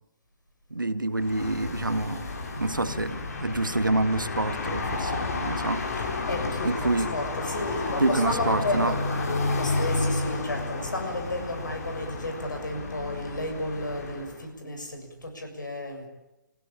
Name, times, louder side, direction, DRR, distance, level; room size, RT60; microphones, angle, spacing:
voice 1, 0.7-2.3 2.6-5.9 6.6-7.1 8.0-8.9, right 2 dB, 80° right, 1.7 m, -27 dB
sound 1, 1.2-14.4, left 3 dB, 50° left, 4.3 m, -31 dB
sound 2, 2.6-15.1, left 4 dB, 30° left, 7.1 m, -47 dB
voice 2, 5.8-16.1, left 1 dB, 70° left, 7.3 m, -33 dB
29.5 x 16.5 x 8.8 m
figure-of-eight pair, 135°, 11 cm